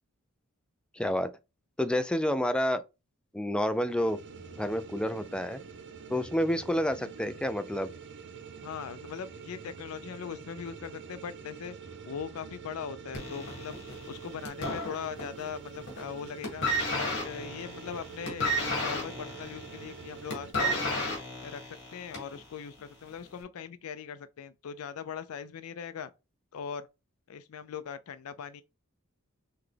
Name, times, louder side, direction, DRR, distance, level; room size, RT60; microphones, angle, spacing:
voice 1, 0.9-1.3 1.8-2.8 3.3-4.2 4.5-5.6 6.1-7.9, equal, 5° left, 0.3 m, -29 dB
sound 1, 3.6-20.5, right 6 dB, 60° right, 0.6 m, -46 dB
voice 2, 8.6-11.8 12.1-13.8 14.0-16.7 17.0-21.1 21.4-26.1 26.5-26.9 27.3-28.6, left 7 dB, 85° left, 0.4 m, -40 dB
sound 2, 13.1-15.5 15.8-16.1 16.4-22.4 23.2-23.3, equal, 60° left, 2.0 m, -32 dB
5.8 x 2.2 x 3.3 m
head